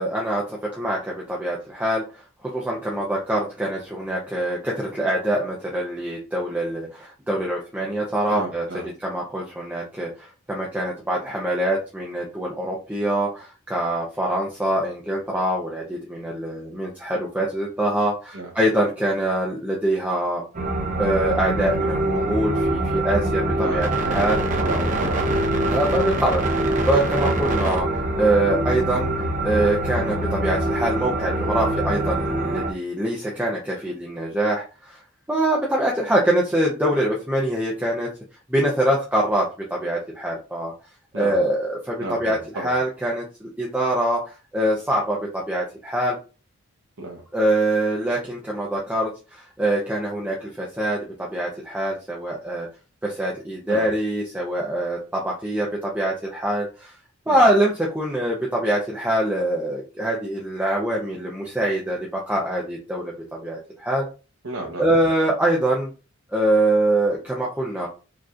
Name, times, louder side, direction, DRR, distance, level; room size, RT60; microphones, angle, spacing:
voice 1, 0.0-2.0 2.5-8.6 9.0-20.4 21.0-24.4 25.7-29.1 29.4-35.0 35.3-38.1 38.5-39.5 39.7-40.7 41.1-46.2 47.3-52.7 53.0-56.9 57.3-64.1 64.8-65.9 66.3-67.9, right 1 dB, 5° right, -3 dB, 0.6 m, -24 dB
voice 2, 8.3-8.9 18.3-18.5 23.6-24.3 24.6-25.3 41.1-41.4 42.0-42.8 47.0-47.2 53.7-53.9 57.3-57.4 64.4-64.9, right 2 dB, 70° right, -1 dB, 0.8 m, -32 dB
sound 1, 20.5-32.7, right 1 dB, 35° right, 0.7 m, -24 dB
4.9 x 2.9 x 2.4 m, 0.34 s
head